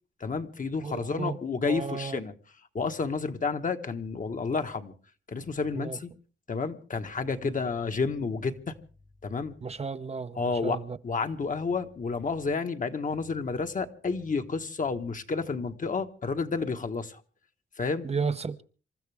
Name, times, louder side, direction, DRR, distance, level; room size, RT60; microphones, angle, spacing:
voice 1, 0.2-2.3 2.7-4.9 5.3-6.1 6.5-8.8 9.2-9.6 10.3-10.8 11.0-17.2 17.8-18.1, left 4 dB, 40° left, 7 dB, 1.4 m, -30 dB
voice 2, 0.8-1.4 1.6-2.2 5.7-6.0 9.6-11.0 18.0-18.6, right 5 dB, 35° right, 11 dB, 0.7 m, -33 dB
27.0 x 14.0 x 3.5 m, 0.39 s
cardioid pair, 95°, 20 cm